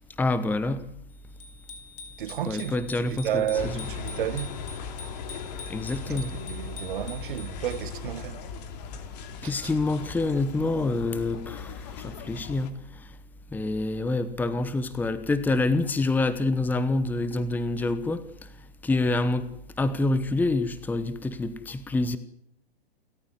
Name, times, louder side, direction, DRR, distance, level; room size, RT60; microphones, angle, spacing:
voice 1, 0.2-0.8 2.4-3.4 3.7-3.8 5.7-6.3 9.4-12.7 13.0-13.1 13.5-18.2 18.8-19.5 19.8-22.2, left 2 dB, 5° left, 1.1 m, -26 dB
Bicycle bell, 1.4-8.1, left 3 dB, 60° left, 5.2 m, -45 dB
voice 2, 2.2-4.6 6.1-8.4 9.4-9.7, right 10 dB, 55° right, 1.5 m, -32 dB
sound 1, 3.6-12.7, left 6 dB, 40° left, 2.9 m, -38 dB
29.5 x 14.0 x 9.6 m
figure-of-eight pair, 110°, 32 cm